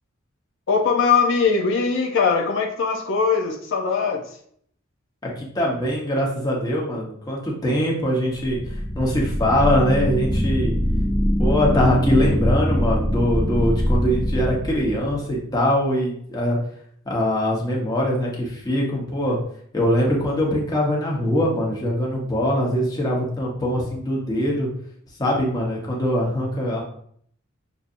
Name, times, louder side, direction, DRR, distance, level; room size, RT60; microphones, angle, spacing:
voice 1, 0.7-4.4, left 5 dB, 65° left, 0 dB, 0.6 m, -21 dB
voice 2, 5.4-10.7 11.4-16.6 17.0-19.4 19.7-24.7 25.2-26.8, equal, 20° left, -3 dB, 1.0 m, -22 dB
sound 1, 8.4-15.4, equal, ahead, 0.5 m, -23 dB
5.9 x 2.7 x 2.5 m, 0.65 s
head